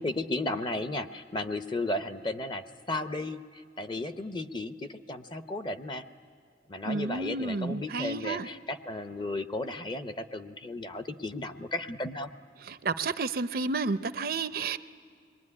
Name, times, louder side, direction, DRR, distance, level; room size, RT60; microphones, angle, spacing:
voice 1, 0.0-6.0 6.7-12.3, left 2 dB, 25° left, 10 dB, 0.7 m, -34 dB
voice 2, 6.8-8.5 12.6-14.8, right 3 dB, 55° right, 12 dB, 0.6 m, -31 dB
25.5 x 22.0 x 9.8 m, 2.1 s
head